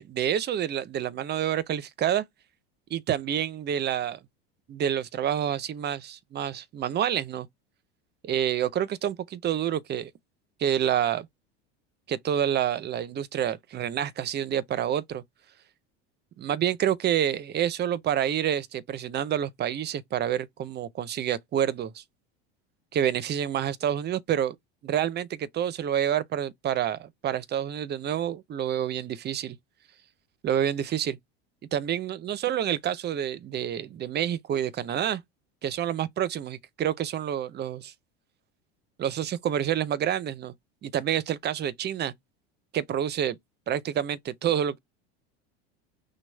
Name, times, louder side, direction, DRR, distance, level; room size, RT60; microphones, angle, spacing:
voice 1, 0.0-2.2 2.9-4.2 4.7-7.5 8.2-10.1 10.6-11.3 12.1-15.2 16.4-22.0 22.9-24.6 24.8-29.6 30.4-31.2 31.7-35.2 35.6-37.9 39.0-40.5 40.8-42.1 42.7-43.4 43.7-44.8, right 10 dB, 35° right, 0.7 m, -28 dB
6.1 x 2.3 x 3.4 m
supercardioid pair, 105°, 31 cm